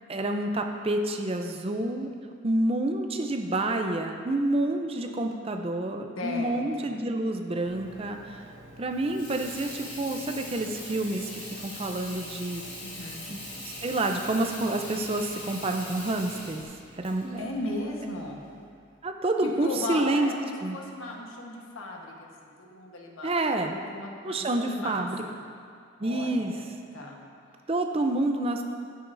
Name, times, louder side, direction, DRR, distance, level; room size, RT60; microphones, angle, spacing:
voice 1, 0.1-2.1 2.4-8.4 8.8-12.6 13.3-13.4 13.8-16.6 17.0-17.5 19.0-20.3 20.6-20.8 23.2-23.8 24.2-25.2 26.0-26.5 27.7-28.6, right 2 dB, 25° right, 4 dB, 0.5 m, -28 dB
voice 2, 6.2-6.9 12.8-13.2 17.4-18.4 19.4-23.3 23.7-25.4 26.0-26.6 26.9-27.2, left 2 dB, 70° left, 0 dB, 1.2 m, -36 dB
Engine, 7.7-16.6, right 2 dB, 60° right, 1.0 m, -49 dB
Water tap faucet / Sink (filling or washing), 8.9-18.5, left 1 dB, 25° left, 2.0 m, -42 dB
11.0 x 9.3 x 2.6 m, 2.3 s
head